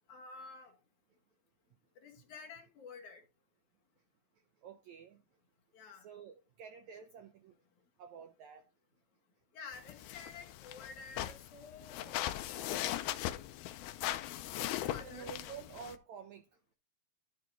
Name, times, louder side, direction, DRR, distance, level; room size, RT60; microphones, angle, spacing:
voice 1, 0.1-0.8 2.0-3.2 5.7-6.1 9.5-12.7 14.6-15.3, left 4 dB, 65° left, 2.4 m, -51 dB
voice 2, 4.6-5.2 6.0-7.5 8.0-8.6 15.0-16.4, right 7 dB, 80° right, 1.6 m, -50 dB
sound 1, 9.7-16.0, left 13 dB, 80° left, 2.5 m, -39 dB
12.5 x 4.5 x 3.9 m
omnidirectional pair, 4.4 m